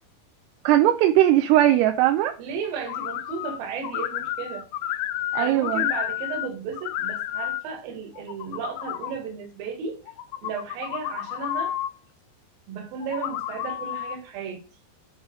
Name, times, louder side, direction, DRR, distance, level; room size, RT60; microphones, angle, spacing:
voice 1, 0.6-2.3 5.3-5.9, right 13 dB, 80° right, 2.6 m, -19 dB
voice 2, 2.4-4.7 5.4-10.0 10.4-11.8 12.7-14.6, right 6 dB, 65° right, 3.1 m, -34 dB
sound 1, 2.9-3.6 3.8-6.5 6.7-7.6 8.1-9.1 10.1-11.9 13.0-14.2, left 13 dB, 90° left, 2.0 m, -30 dB
8.0 x 4.0 x 5.0 m
omnidirectional pair, 4.8 m